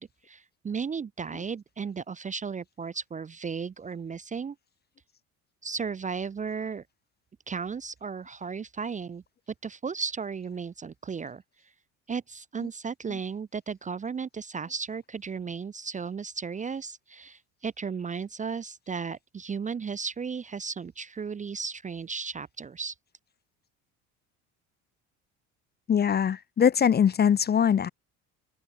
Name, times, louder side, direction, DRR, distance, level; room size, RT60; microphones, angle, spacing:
voice 1, 0.0-4.6 5.6-6.8 7.5-9.2 9.6-11.4 12.1-22.9, right 5 dB, 20° right, 0.6 m, -35 dB
voice 2, 25.9-27.9, left 8 dB, 25° left, 0.6 m, -22 dB
open air
supercardioid pair, 80°, 36 cm